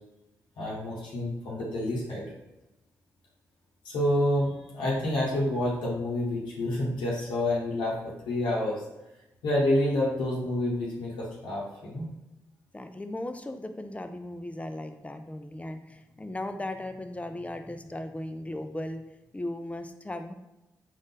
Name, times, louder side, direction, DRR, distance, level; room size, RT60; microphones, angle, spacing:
voice 1, 0.6-2.2 3.8-8.8 9.4-12.1, left 1 dB, 85° left, -6 dB, 0.9 m, -28 dB
voice 2, 12.7-19.0 19.3-20.3, left 1 dB, 15° left, 7 dB, 0.5 m, -37 dB
3.9 x 2.5 x 3.8 m, 0.95 s
supercardioid pair, 40°, 8 cm